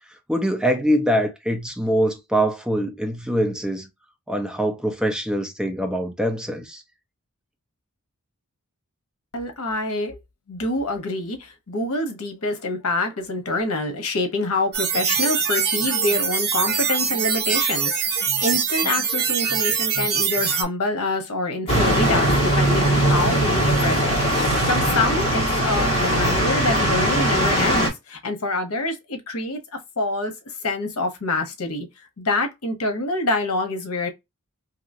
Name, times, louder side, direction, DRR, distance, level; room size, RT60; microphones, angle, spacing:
voice 1, 0.3-3.9 4.3-6.8, equal, 5° right, 0.6 m, -23 dB
voice 2, 9.3-10.2 10.5-24.2 24.5-30.3 30.6-34.1, left 2 dB, 75° left, 0.9 m, -26 dB
sound 1, 14.7-20.6, right 6 dB, 50° right, 0.8 m, -23 dB
sound 2, 21.7-27.9, right 1 dB, 25° left, 1.7 m, -20 dB
2.9 x 2.7 x 2.6 m
head